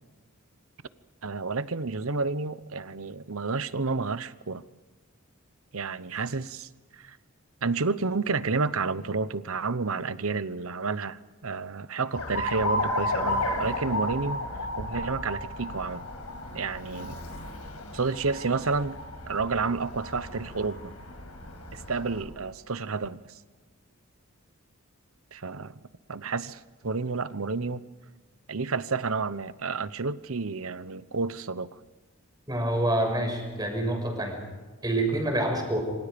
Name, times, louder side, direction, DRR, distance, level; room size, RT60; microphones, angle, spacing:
voice 1, 1.2-4.7 5.7-7.2 7.6-14.4 14.8-16.1 16.5-17.2 17.9-19.0 19.3-20.9 21.7-23.2 25.3-25.8 26.1-27.8 28.5-31.7, right 4 dB, 70° right, 15 dB, 1.0 m, -30 dB
Alarm, 12.1-22.2, left 1 dB, 90° left, 5.7 m, -33 dB
voice 2, 32.5-34.4 34.8-35.8, right 1 dB, 20° right, 2 dB, 6.4 m, -27 dB
27.0 x 26.5 x 5.3 m, 1.3 s
head